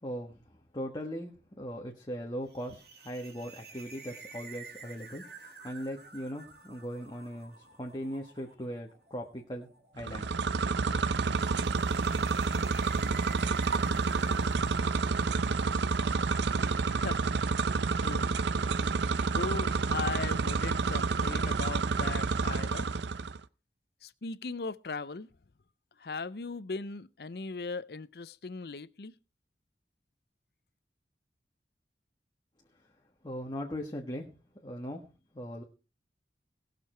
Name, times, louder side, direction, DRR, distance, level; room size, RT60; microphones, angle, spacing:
voice 1, 0.0-10.3 33.2-34.3 34.6-35.0 35.3-35.6, equal, 25° left, 1.4 m, -39 dB
sound 1, 2.5-16.8, right 4 dB, 65° right, 2.5 m, -51 dB
sound 2, 10.0-23.4, right 4 dB, 85° right, 0.6 m, -29 dB
voice 2, 16.9-17.3 18.0-18.3 19.2-22.9 24.0-25.3 26.0-29.1, left 4 dB, 65° left, 0.6 m, -38 dB
19.0 x 6.7 x 4.5 m
head